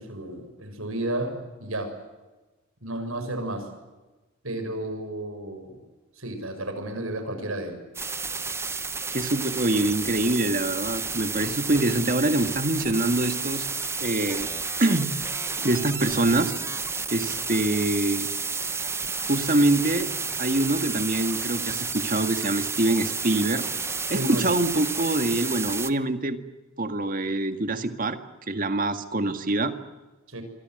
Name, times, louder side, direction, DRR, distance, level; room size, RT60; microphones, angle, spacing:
voice 1, 0.0-1.9 2.8-3.7 4.4-5.8 6.2-7.8 24.1-24.5 30.3-30.4, right 1 dB, 90° right, 7 dB, 6.6 m, -32 dB
sound 1, 7.9-25.9, right 4 dB, 15° right, 1.0 m, -31 dB
voice 2, 9.1-13.7 14.0-14.5 14.8-15.2 15.6-16.5 17.1-18.3 19.2-20.1 20.4-23.6 24.1-26.4 26.8-28.2 28.5-29.7, right 2 dB, 40° right, 8 dB, 1.9 m, -25 dB
26.5 x 25.0 x 7.9 m, 1.2 s
head